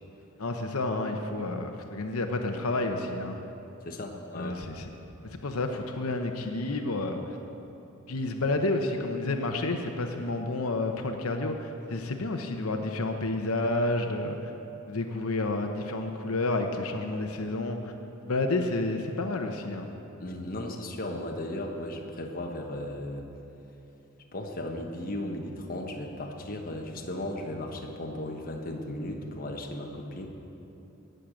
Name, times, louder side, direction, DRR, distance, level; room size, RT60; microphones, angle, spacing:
voice 1, 0.4-3.4 4.3-4.9 5.3-7.4 8.1-14.5 14.9-17.9 18.2-19.9, left 2 dB, 85° left, 5 dB, 0.9 m, -30 dB
voice 2, 3.8-4.5 20.2-23.2 24.3-30.3, left 1 dB, 40° left, 1 dB, 1.2 m, -36 dB
17.5 x 6.7 x 7.7 m, 3.0 s
head